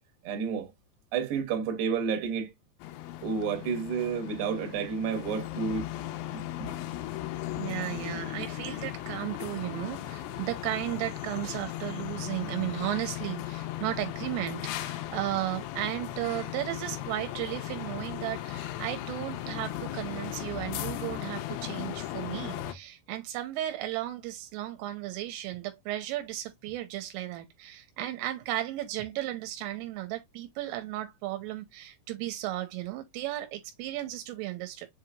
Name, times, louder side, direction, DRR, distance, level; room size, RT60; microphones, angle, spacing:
voice 1, 0.2-0.7 1.1-2.5 3.2-5.9 6.3-6.7, right 6 dB, 65° right, 2.9 m, -30 dB
sound 1, 2.8-22.7, left 13 dB, 85° left, 2.7 m, -37 dB
voice 2, 7.6-34.9, right 14 dB, 85° right, 3.2 m, -35 dB
7.3 x 2.9 x 2.3 m
omnidirectional pair, 5.9 m